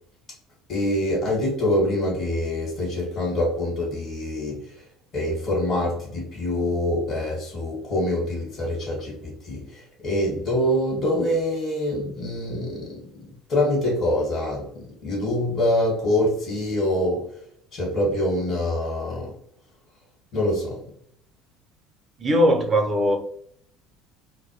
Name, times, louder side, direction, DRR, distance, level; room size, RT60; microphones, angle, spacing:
voice 1, 0.7-4.8 5.1-17.3 17.7-19.3 20.3-20.8, left 1 dB, 40° left, 1.2 m, -25 dB
voice 2, 22.2-23.2, equal, 30° right, 0.6 m, -19 dB
2.1 x 2.1 x 2.8 m
hypercardioid pair, 70°, 0 cm